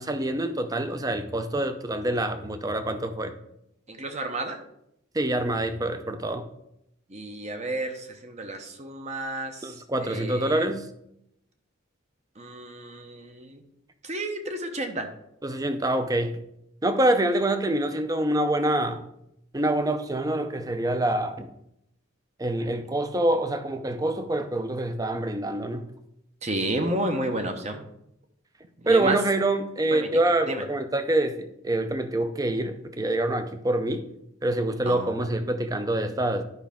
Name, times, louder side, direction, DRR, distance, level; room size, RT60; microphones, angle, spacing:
voice 1, 0.0-3.3 5.1-6.5 9.6-10.9 15.4-16.4 16.8-19.0 19.5-21.5 22.4-25.9 28.9-34.1 34.4-36.4, right 1 dB, 20° right, 9 dB, 0.6 m, -26 dB
voice 2, 3.9-4.6 7.1-10.7 12.4-13.6 14.0-15.1 26.4-27.9 28.8-29.2 29.9-30.1 30.5-30.6 34.8-35.2, right 1 dB, 35° right, 5 dB, 0.9 m, -31 dB
11.0 x 5.1 x 3.6 m, 0.79 s
head